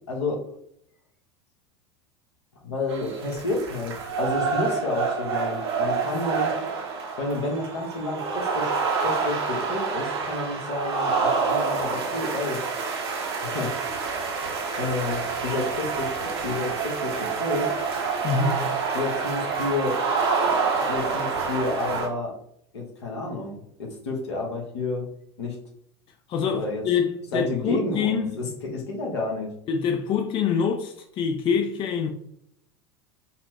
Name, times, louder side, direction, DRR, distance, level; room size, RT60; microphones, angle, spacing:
voice 1, 0.1-0.4 2.6-6.5 7.2-8.7 9.0-12.6 13.4-13.7 14.8-17.7 18.9-20.0 20.9-22.3 22.7-25.1 25.4-25.6 26.5-26.8 27.3-29.5, left 2 dB, 80° left, 1.1 m, -30 dB
sound 1, 2.9-22.1, right 5 dB, 70° right, 1.0 m, -27 dB
voice 2, 18.2-18.7 20.8-20.9 26.3-28.8 29.7-32.1, left 6 dB, 40° left, 0.5 m, -26 dB
4.1 x 2.0 x 3.0 m
hypercardioid pair, 85°, 14 cm